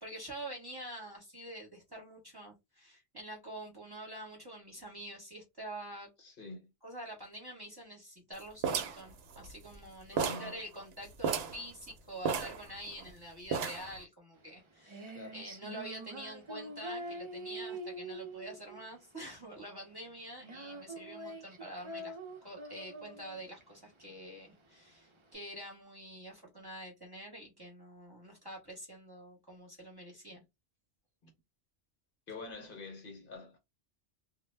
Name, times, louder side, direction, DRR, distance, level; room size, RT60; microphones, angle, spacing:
voice 1, 0.0-6.1 6.8-22.2 22.4-30.4, right 1 dB, 20° right, 0.9 m, -46 dB
voice 2, 6.2-6.7 10.1-10.6 15.1-15.4 31.2-31.3 32.3-33.6, left 3 dB, 55° left, 0.9 m, -46 dB
sound 1, 8.6-9.8 10.2-10.5 10.8-10.9 11.2-11.6 12.3-13.1 13.5-14.0, right 6 dB, 70° right, 0.8 m, -33 dB
Female singing, 14.4-25.3, right 1 dB, 35° right, 0.5 m, -45 dB
2.2 x 2.1 x 3.2 m
omnidirectional pair, 1.2 m